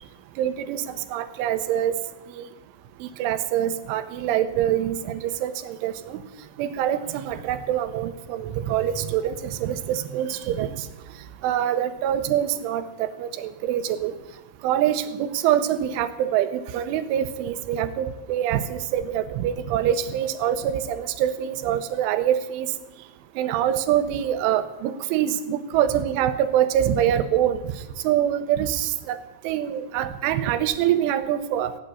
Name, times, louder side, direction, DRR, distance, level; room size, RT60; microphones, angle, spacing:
voice 1, 0.4-2.0 2.4-2.5 3.0-6.2 6.6-10.7 11.4-14.1 14.6-22.7 23.4-27.6 28.0-29.2 29.4-31.8, right 10 dB, 80° right, 11 dB, 3.2 m, -25 dB
16.5 x 8.8 x 9.7 m, 1.0 s
omnidirectional pair, 5.6 m